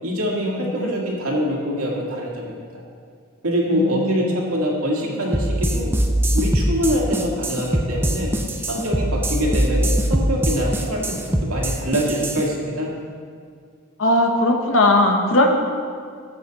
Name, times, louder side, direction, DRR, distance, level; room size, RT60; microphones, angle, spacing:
voice 1, 0.0-2.8 3.4-5.9 6.3-8.3 8.7-12.9, equal, 85° right, -2 dB, 2.1 m, -24 dB
voice 2, 3.7-4.3 14.0-15.5, left 1 dB, 65° left, 3 dB, 1.1 m, -18 dB
sound 1, 5.3-12.4, right 1 dB, 10° right, 0.6 m, -22 dB
12.5 x 8.1 x 4.1 m, 2.2 s
head